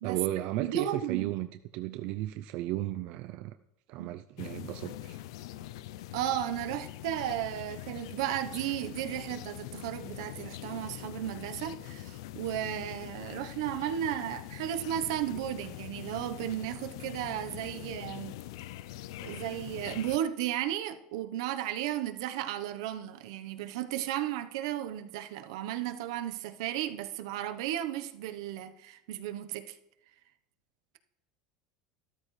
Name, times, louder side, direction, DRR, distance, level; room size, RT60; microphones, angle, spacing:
voice 1, 0.0-1.5 1.7-3.5 3.9-5.2, right 15 dB, 55° right, 0.4 m, -34 dB
voice 2, 0.6-1.3 4.0-4.1 6.1-18.4 19.2-29.7, right 12 dB, 80° right, 0.9 m, -34 dB
sound 1, 4.4-20.2, left 14 dB, 85° left, 0.4 m, -43 dB
13.0 x 12.0 x 3.2 m
supercardioid pair, 145°, 3 cm